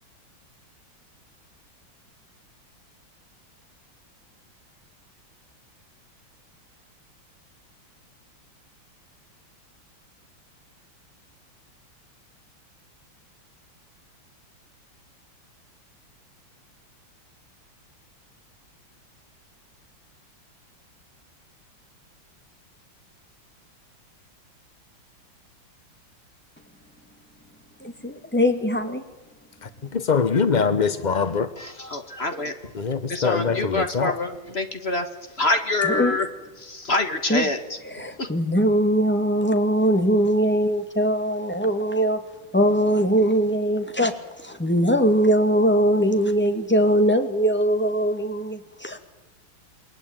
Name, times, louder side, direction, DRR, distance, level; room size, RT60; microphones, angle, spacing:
voice 1, 27.8-29.0 35.9-36.2 37.3-37.4 37.9-42.2 42.5-49.0, equal, 5° left, 2.3 m, -21 dB
voice 2, 29.6-31.5 32.8-34.1, left 5 dB, 50° left, 0.5 m, -23 dB
voice 3, 31.6-36.3 36.6-38.3, left 2 dB, 30° left, 1.9 m, -27 dB
28.5 x 21.5 x 9.0 m
omnidirectional pair, 2.2 m